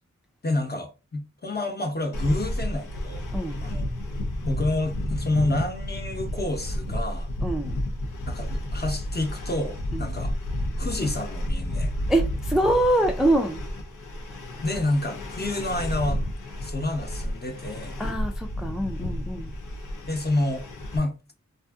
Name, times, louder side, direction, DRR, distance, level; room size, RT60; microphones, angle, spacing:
voice 1, 0.4-3.2 3.6-3.8 4.4-7.3 8.3-10.3 10.8-11.9 14.6-16.2 16.6-18.0 20.1-20.6 20.9-21.1, left 2 dB, 35° left, 0.8 m, -28 dB
sound 1, 2.1-21.0, left 1 dB, 85° left, 0.6 m, -31 dB
voice 2, 7.4-7.8 9.9-10.1 12.1-13.6 18.0-19.5, right 1 dB, ahead, 0.4 m, -24 dB
2.5 x 2.5 x 2.4 m
wide cardioid pair, 40°, 30 cm